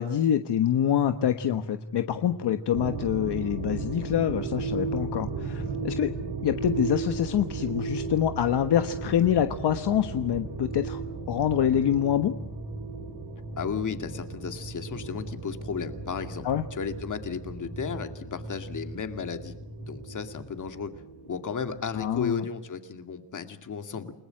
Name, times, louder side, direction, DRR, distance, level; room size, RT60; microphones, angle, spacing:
voice 1, 0.0-6.1 6.4-12.3 16.4-16.6 22.0-22.4, left 10 dB, 65° left, 8 dB, 1.3 m, -26 dB
sound 1, 1.0-20.6, equal, 10° left, 3.5 m, -43 dB
sound 2, 2.7-22.2, right 4 dB, 70° right, 3.7 m, -36 dB
voice 2, 13.6-19.5 19.8-20.9 21.3-24.1, left 6 dB, 45° left, 7 dB, 2.4 m, -34 dB
29.0 x 20.5 x 7.8 m, 0.76 s
wide cardioid pair, 150°, 43 cm